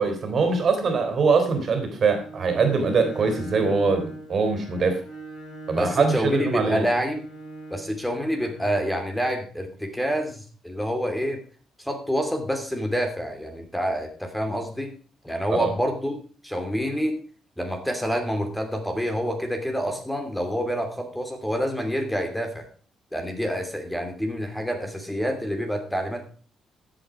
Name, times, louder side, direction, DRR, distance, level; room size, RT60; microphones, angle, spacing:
voice 1, 0.0-5.0 5.7-6.8 15.5-15.7, right 4 dB, 50° right, 7 dB, 3.4 m, -22 dB
Bowed string instrument, 2.0-9.1, right 2 dB, 80° left, 4.3 m, -40 dB
voice 2, 5.8-7.2 7.7-11.4 11.8-14.9 15.2-16.2 16.4-17.2 17.6-22.7 23.1-26.3, equal, 5° left, 4 dB, 2.8 m, -27 dB
13.0 x 8.0 x 4.9 m, 0.41 s
cardioid pair, 90°, 0 cm